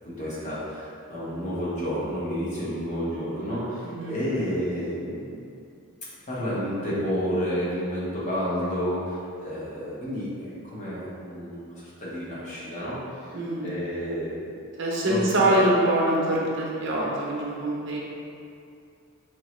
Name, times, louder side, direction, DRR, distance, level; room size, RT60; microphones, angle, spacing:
voice 1, 0.0-5.4 6.3-13.3 13.6-14.6 15.0-15.2, equal, 35° left, -8 dB, 0.9 m, -30 dB
voice 2, 3.8-4.1 13.3-13.7 14.8-18.0, right 1 dB, 55° right, -4 dB, 0.6 m, -24 dB
3.6 x 3.0 x 3.1 m, 2.5 s
head